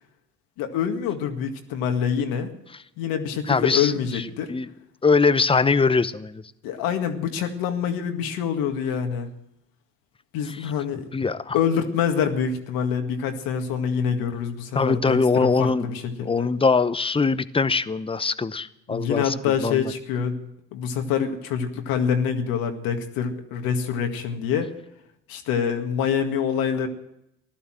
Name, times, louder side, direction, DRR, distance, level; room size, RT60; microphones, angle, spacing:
voice 1, 0.6-2.5 3.0-4.5 6.6-9.3 10.3-11.1 11.5-16.5 18.9-20.4 20.7-24.7 25.3-26.9, left 7 dB, 75° left, 5 dB, 2.0 m, -26 dB
voice 2, 3.5-4.7 5.0-6.4 11.1-11.6 14.7-15.9 16.2-19.9, left 4 dB, 15° left, 15 dB, 0.8 m, -22 dB
15.5 x 12.0 x 7.6 m, 0.83 s
supercardioid pair, 70°, 35 cm